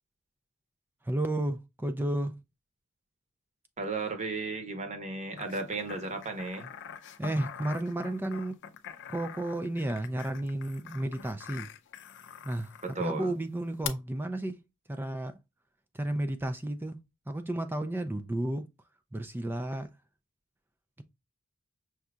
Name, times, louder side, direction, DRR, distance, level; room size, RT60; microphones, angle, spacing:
voice 1, 1.0-2.3 7.2-8.6 9.1-11.7 12.4-14.6 14.9-15.4 15.9-17.0 17.3-18.6 19.1-19.9, right 1 dB, 10° right, 0.3 m, -32 dB
voice 2, 3.8-6.7 12.8-13.3, right 3 dB, 30° right, 0.8 m, -34 dB
sound 1, 5.4-13.0 13.8-13.9, left 9 dB, 55° left, 0.5 m, -44 dB
6.0 x 2.7 x 2.3 m
head